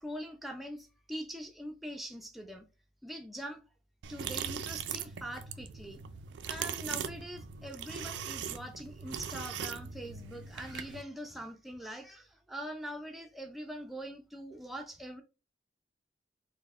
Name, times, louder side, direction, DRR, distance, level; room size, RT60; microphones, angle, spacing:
voice 1, 0.0-2.7 3.0-3.6 4.1-6.0 6.5-15.2, equal, ahead, 0.3 m, -43 dB
sound 1, 4.0-11.0, right 7 dB, 75° right, 0.3 m, -40 dB
4.2 x 2.1 x 3.4 m
head